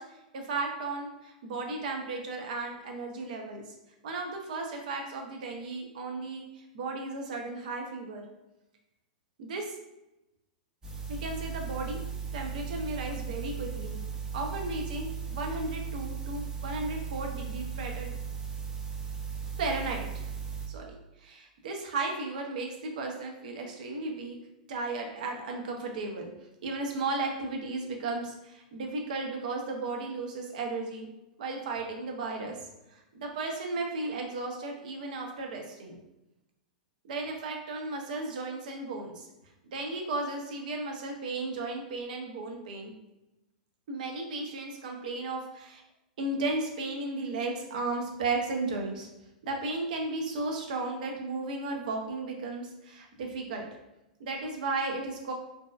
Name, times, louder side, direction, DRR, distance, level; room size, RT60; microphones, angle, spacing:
voice 1, 0.0-3.7 4.0-8.2 9.4-9.8 11.1-12.0 12.3-14.0 14.3-18.1 19.6-20.3 20.7-24.4 24.7-26.3 26.6-31.1 31.4-36.0 37.0-39.3 39.7-42.9 43.9-45.8 46.2-49.1 49.4-53.7 54.2-55.3, right 3 dB, 65° right, 2 dB, 0.6 m, -35 dB
sound 1, 10.8-20.7, right 6 dB, 15° right, 0.5 m, -37 dB
2.7 x 2.2 x 2.2 m, 0.93 s
hypercardioid pair, 110°, 5 cm